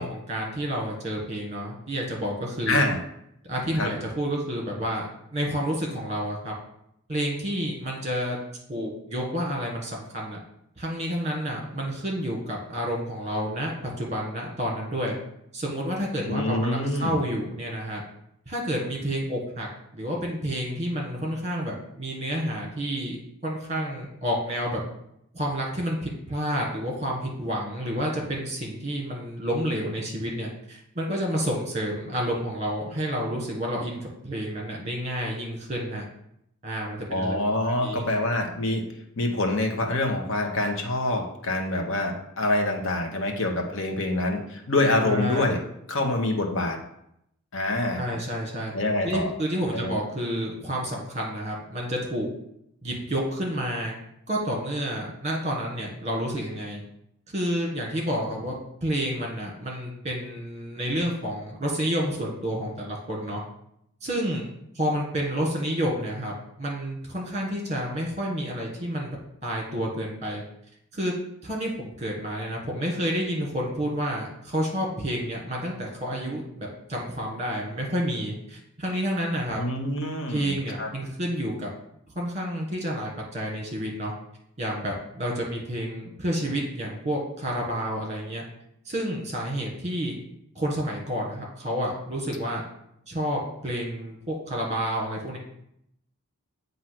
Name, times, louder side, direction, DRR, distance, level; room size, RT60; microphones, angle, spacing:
voice 1, 0.0-2.9 3.4-6.5 7.1-8.4 8.7-10.4 10.8-15.1 15.5-18.0 18.5-19.7 19.9-23.2 23.4-24.8 25.3-36.0 36.6-37.4 37.8-38.0 45.0-45.6 48.0-48.7 49.0-52.3 52.8-54.0 54.3-56.8 57.3-58.6 58.8-63.4 64.0-64.5 64.7-70.4 70.9-71.1 71.4-79.6 80.3-81.7 82.1-84.1 84.6-88.4 88.8-90.1 90.5-92.6 93.1-95.4, equal, 30° right, -1 dB, 1.6 m, -29 dB
voice 2, 2.7-3.0 3.7-3.9 16.2-17.2 37.1-38.8 39.2-45.6 45.9-46.8 47.5-48.0 48.7-49.3 49.7-49.9 79.6-80.5 80.8-80.9, left 2 dB, 60° left, 2 dB, 1.0 m, -26 dB
7.6 x 2.8 x 5.9 m, 0.76 s
head